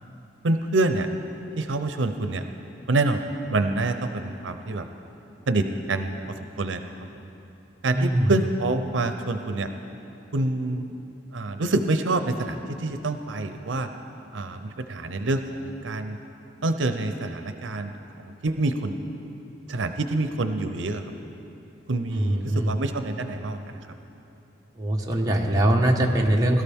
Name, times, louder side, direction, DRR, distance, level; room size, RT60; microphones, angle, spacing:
voice 1, 0.4-1.1 1.6-2.4 2.9-3.2 3.5-4.9 5.5-6.8 7.8-9.7 10.3-10.9 11.3-13.9 14.3-16.2 16.6-19.0 19.7-21.0 21.9-23.8, right 2 dB, 80° right, 7 dB, 0.6 m, -27 dB
voice 2, 7.9-8.3 22.1-22.7 24.8-26.6, right 1 dB, 20° right, -1 dB, 1.2 m, -22 dB
21.5 x 13.0 x 3.6 m, 2.9 s
head